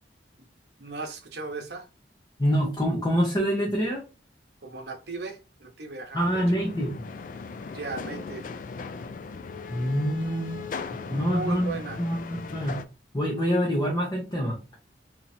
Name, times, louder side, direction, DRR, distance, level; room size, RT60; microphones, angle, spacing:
voice 1, 0.8-1.9 4.6-6.5 7.7-8.4 11.1-12.0, right 4 dB, 65° right, 4 dB, 0.8 m, -36 dB
voice 2, 2.4-4.0 6.1-6.9 9.7-10.7 11.1-12.8 13.1-14.6, equal, 20° left, -3 dB, 0.8 m, -26 dB
sound 1, 6.2-12.8, left 4 dB, 45° left, 0.3 m, -38 dB
3.0 x 2.7 x 4.0 m, 0.31 s
head